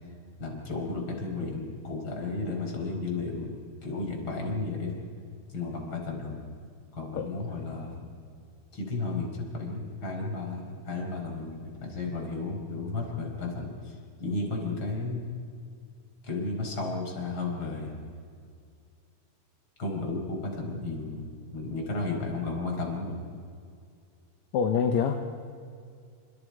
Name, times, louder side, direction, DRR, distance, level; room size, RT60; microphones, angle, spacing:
voice 1, 0.4-3.5 3.8-4.9 5.5-6.4 6.9-8.0 8.7-13.9 14.2-15.2 16.2-17.9 19.8-23.2, left 3 dB, 35° left, 0 dB, 5.3 m, -33 dB
voice 2, 7.1-7.6 24.5-25.3, left 6 dB, 70° left, 5 dB, 2.3 m, -27 dB
29.5 x 28.0 x 5.0 m, 2.3 s
omnidirectional pair, 3.8 m